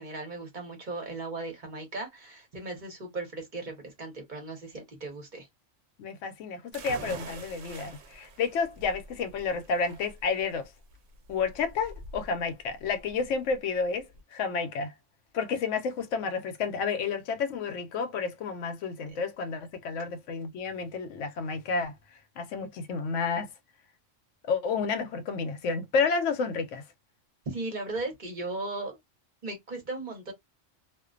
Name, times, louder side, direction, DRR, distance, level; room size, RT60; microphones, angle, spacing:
voice 1, 0.0-5.5 19.1-19.2 27.5-29.0 29.4-30.3, right 2 dB, 45° right, 0.9 m, -37 dB
voice 2, 6.0-10.6 11.3-14.9 15.3-21.9 22.4-23.5 24.4-26.8, left 5 dB, 85° left, 0.9 m, -30 dB
sound 1, 6.7-14.2, right 3 dB, 90° right, 1.1 m, -46 dB
2.4 x 2.1 x 2.4 m
omnidirectional pair, 1.3 m